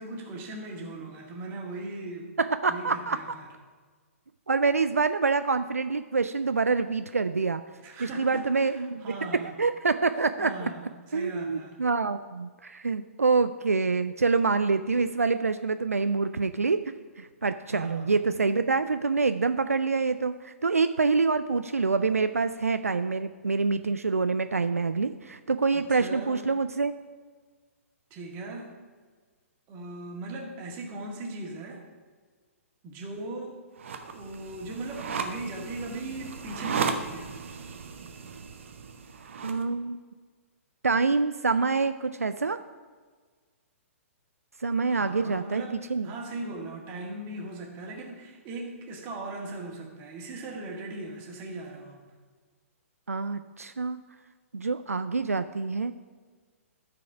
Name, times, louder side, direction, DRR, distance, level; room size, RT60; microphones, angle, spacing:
voice 1, 0.0-2.3 2.7-3.5 7.8-9.5 10.4-11.7 17.7-18.3 25.7-26.5 28.1-28.8 29.7-31.8 32.8-33.6 34.1-37.3 44.9-52.0, right 2 dB, 30° right, -1 dB, 2.0 m, -39 dB
voice 2, 2.4-3.2 4.5-7.6 8.0-9.0 9.4-10.7 11.1-16.8 17.2-26.9 39.4-40.0 40.8-42.6 44.6-46.1 53.1-54.0 54.5-55.9, right 4 dB, 85° right, 10 dB, 0.3 m, -26 dB
sound 1, 33.8-39.6, right 5 dB, 60° right, 0.9 m, -35 dB
13.0 x 4.8 x 5.0 m, 1.5 s
figure-of-eight pair, 120°, 8 cm